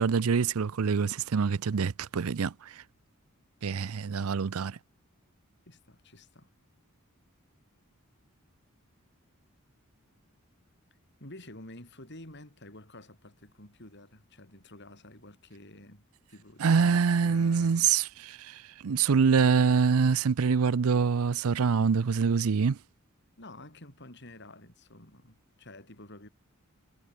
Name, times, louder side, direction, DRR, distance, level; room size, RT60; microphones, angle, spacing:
voice 1, 0.0-2.7 3.6-4.8 16.6-22.8, right 5 dB, 80° right, 0.5 m, -25 dB
voice 2, 5.7-6.5 11.2-17.8 23.4-26.3, left 1 dB, 55° left, 7.9 m, -50 dB
head